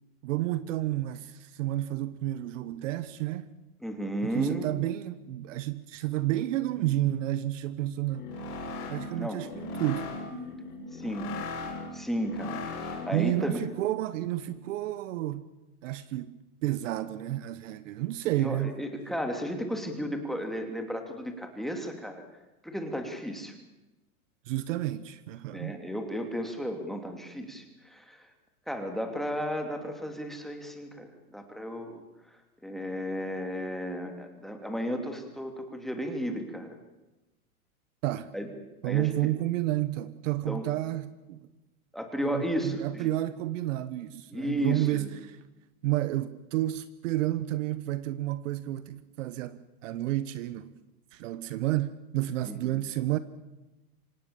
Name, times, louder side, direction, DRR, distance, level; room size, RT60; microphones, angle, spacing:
voice 1, 0.2-3.5 4.2-8.3 8.9-10.1 13.1-15.4 15.8-18.8 24.5-25.8 38.0-38.3 38.8-41.5 42.2-45.4 45.8-50.8 51.1-53.2, right 15 dB, 55° right, 1.2 m, -31 dB
voice 2, 3.8-4.7 9.1-9.4 10.9-11.3 11.9-13.6 18.4-22.2 22.6-23.5 25.5-28.3 28.7-32.0 32.6-36.8 38.3-38.5 38.8-39.3 40.5-40.6 41.9-43.1 44.3-45.1 52.5-52.7, equal, ahead, 2.9 m, -34 dB
sound 1, 8.0-13.3, left 3 dB, 80° left, 6.5 m, -38 dB
26.0 x 18.0 x 7.2 m
hypercardioid pair, 135°, 44 cm